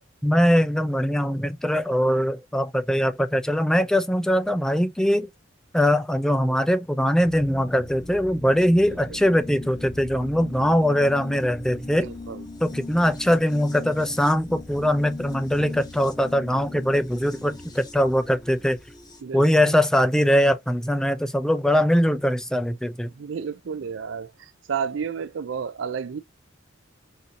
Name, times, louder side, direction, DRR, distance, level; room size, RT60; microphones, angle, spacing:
voice 1, 0.2-5.3 5.7-12.1 12.6-18.8 19.3-23.1, equal, 5° left, 0.3 m, -22 dB
sound 1, 7.2-19.2, left 2 dB, 20° left, 0.8 m, -40 dB
voice 2, 11.9-12.4 19.2-19.7 23.1-26.2, right 6 dB, 65° right, 0.4 m, -32 dB
4.0 x 2.7 x 2.5 m
head